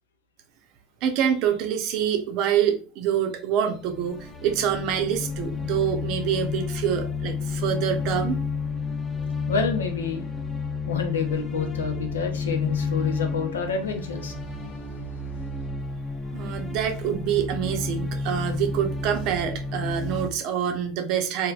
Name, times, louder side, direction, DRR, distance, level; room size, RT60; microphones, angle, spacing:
voice 1, 1.0-8.4 16.3-21.5, right 9 dB, 55° right, 0.5 m, -26 dB
sound 1, 3.8-20.3, left 4 dB, 15° left, 0.4 m, -30 dB
voice 2, 9.5-10.2 10.9-14.4 14.9-15.3, left 5 dB, 85° left, 0.5 m, -29 dB
3.2 x 2.1 x 2.4 m
hypercardioid pair, 95°, 0 cm